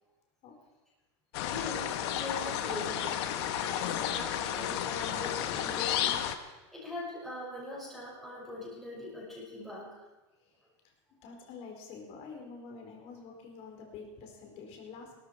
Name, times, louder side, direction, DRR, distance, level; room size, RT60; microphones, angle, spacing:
sound 1, 1.3-6.3, left 10 dB, 60° left, 1.3 m, -32 dB
voice 1, 1.4-3.3 3.6-10.0, left 2 dB, ahead, -7 dB, 5.6 m, -42 dB
voice 2, 11.2-15.2, left 5 dB, 40° left, 2 dB, 4.2 m, -47 dB
18.5 x 13.5 x 4.7 m, 1.2 s
supercardioid pair, 135°, 15 cm